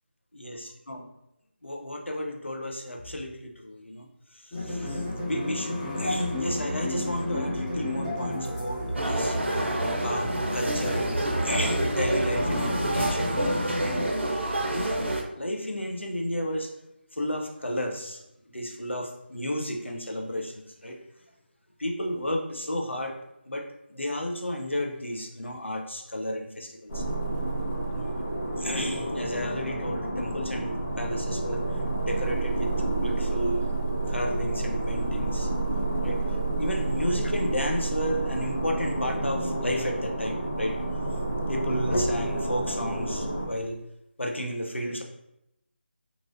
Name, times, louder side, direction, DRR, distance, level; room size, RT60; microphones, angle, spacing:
voice 1, 0.3-1.0 1.6-4.1 4.4-13.6 14.6-14.9 15.4-16.7 17.1-18.2 18.5-21.0 21.8-23.2 23.5-27.0 27.9-28.2 28.6-31.6 32.0-33.7 34.1-35.5 36.0-36.2 36.6-40.7 41.5-43.8 44.2-45.0, equal, 90° left, 2 dB, 0.6 m, -32 dB
sound 1, 4.5-14.1, left 1 dB, 15° left, 0.7 m, -32 dB
sound 2, 8.9-15.2, right 1 dB, 80° right, 0.6 m, -28 dB
sound 3, 26.9-43.5, right 2 dB, 55° left, 1.1 m, -29 dB
3.0 x 2.5 x 2.5 m, 0.83 s
figure-of-eight pair, 160°, 6 cm